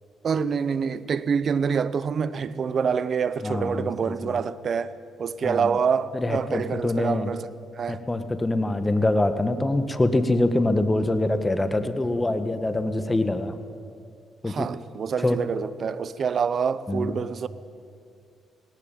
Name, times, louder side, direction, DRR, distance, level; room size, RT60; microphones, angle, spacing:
voice 1, 0.2-4.9 5.2-7.5 7.7-8.0 14.4-17.5, right 6 dB, 50° right, 0.9 m, -26 dB
voice 2, 3.4-4.3 5.4-5.7 6.1-7.3 7.9-13.6 14.4-14.7 15.2-15.4 16.9-17.1, left 2 dB, 15° left, 1.6 m, -24 dB
18.5 x 18.0 x 9.3 m
cardioid pair, 90°, 0 cm